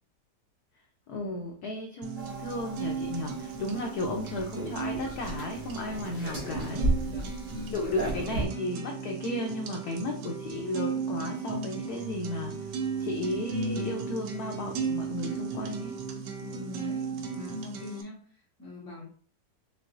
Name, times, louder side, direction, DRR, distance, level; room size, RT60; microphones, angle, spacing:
voice 1, 1.1-6.9 7.7-12.7 13.0-16.0, left 1 dB, 65° left, 2 dB, 1.0 m, -34 dB
sound 1, 2.0-18.0, right 5 dB, 70° right, 1.2 m, -36 dB
sound 2, 2.2-8.5, right 1 dB, 40° right, 2.0 m, -35 dB
voice 2, 7.0-7.3 7.7-8.1 10.0-10.2 16.4-19.0, left 3 dB, 10° left, -4 dB, 1.3 m, -43 dB
4.7 x 3.4 x 2.5 m, 0.43 s
omnidirectional pair, 2.1 m